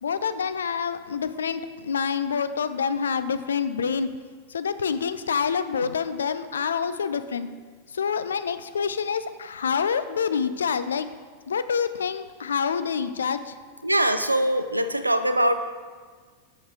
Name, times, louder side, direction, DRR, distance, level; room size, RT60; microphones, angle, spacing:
voice 1, 0.0-4.1 4.5-7.5 7.9-11.1 11.5-13.5, left 6 dB, 70° left, 12 dB, 0.4 m, -27 dB
voice 2, 13.8-15.6, right 1 dB, 85° right, 10 dB, 0.4 m, -22 dB
7.1 x 6.4 x 4.8 m, 1.5 s
figure-of-eight pair, 90°, 0 cm